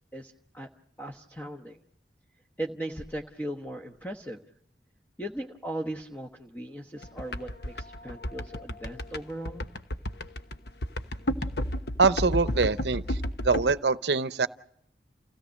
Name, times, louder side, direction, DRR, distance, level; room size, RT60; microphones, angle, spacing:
voice 1, 0.1-0.7 1.0-1.8 2.6-4.4 5.2-9.6, right 1 dB, 10° left, 1.1 m, -38 dB
sound 1, 7.0-13.7, left 1 dB, 65° left, 1.1 m, -31 dB
voice 2, 12.0-14.5, right 4 dB, 70° right, 0.8 m, -24 dB
29.0 x 17.0 x 6.4 m
head